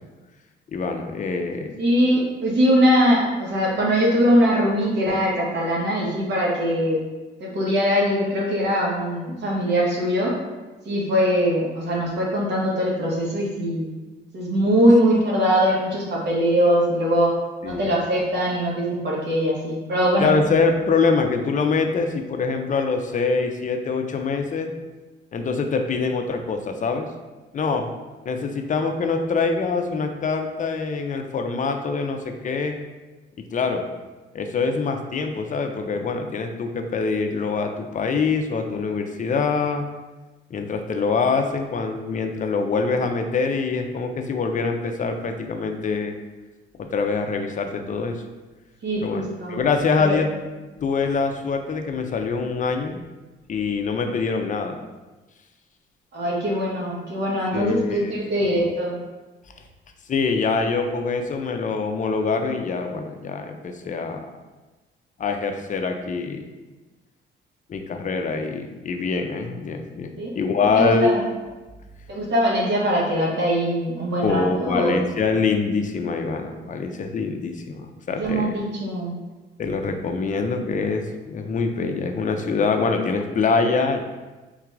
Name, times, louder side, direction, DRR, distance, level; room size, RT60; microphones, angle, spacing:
voice 1, 0.7-1.8 17.6-17.9 20.2-24.7 25.3-27.1 27.5-27.9 28.3-32.8 33.4-33.8 34.3-39.8 40.5-46.2 46.8-48.2 49.0-49.2 49.5-50.3 50.8-53.0 53.5-54.8 57.5-58.1 60.1-64.3 65.2-66.5 67.7-71.1 74.2-78.5 79.6-84.0, left 4 dB, 40° left, 5 dB, 0.5 m, -24 dB
voice 2, 1.8-7.0 7.4-10.3 10.8-13.9 14.3-17.3 17.6-20.3 48.8-49.6 50.0-50.2 56.1-59.0 70.2-70.3 70.7-71.2 72.1-75.0 78.2-79.2, equal, 60° right, -4 dB, 1.4 m, -21 dB
3.9 x 2.4 x 4.5 m, 1.2 s
cardioid pair, 90°, 20 cm